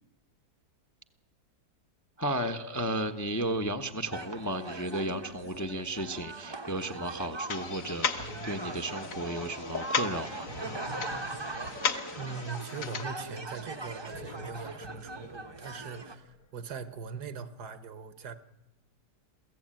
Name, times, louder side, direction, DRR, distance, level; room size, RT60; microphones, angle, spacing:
voice 1, 2.2-10.5, right 1 dB, 15° left, 0.7 m, -34 dB
sound 1, 3.5-4.8 5.4-5.8 8.1-9.9 10.2-13.1 13.9-16.4, equal, 75° left, 2.6 m, -48 dB
sound 2, 4.1-16.2, right 2 dB, 20° right, 0.8 m, -41 dB
sound 3, 7.5-13.0, left 5 dB, 55° left, 1.7 m, -36 dB
voice 2, 12.1-18.4, right 5 dB, 70° right, 1.7 m, -41 dB
23.0 x 15.5 x 9.0 m
omnidirectional pair, 1.8 m